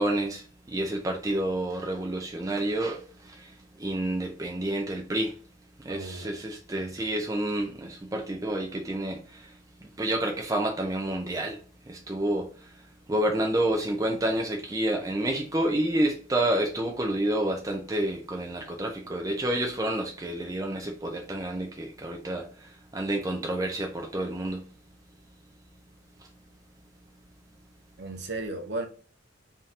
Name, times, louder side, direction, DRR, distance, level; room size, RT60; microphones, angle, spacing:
voice 1, 0.0-5.3 5.8-9.5 10.0-11.6 11.9-12.5 13.1-24.6, right 1 dB, 15° right, 0.5 m, -29 dB
voice 2, 5.9-6.4 6.7-6.9 28.0-28.9, right 2 dB, 55° right, 0.8 m, -35 dB
3.6 x 2.8 x 3.6 m
head